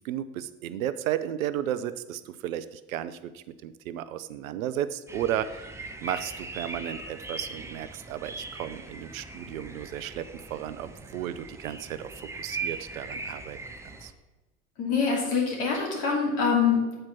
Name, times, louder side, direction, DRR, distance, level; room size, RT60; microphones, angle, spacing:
voice 1, 0.0-5.7 6.0-10.3 10.5-12.1 12.4-13.6 14.0-14.1, right 11 dB, 70° right, 14 dB, 0.6 m, -33 dB
sound 1, 5.1-14.1, right 3 dB, 5° right, 0.6 m, -40 dB
voice 2, 14.8-17.0, left 5 dB, 55° left, -2 dB, 2.6 m, -25 dB
7.7 x 4.4 x 5.8 m, 1.1 s
figure-of-eight pair, 75°, 43 cm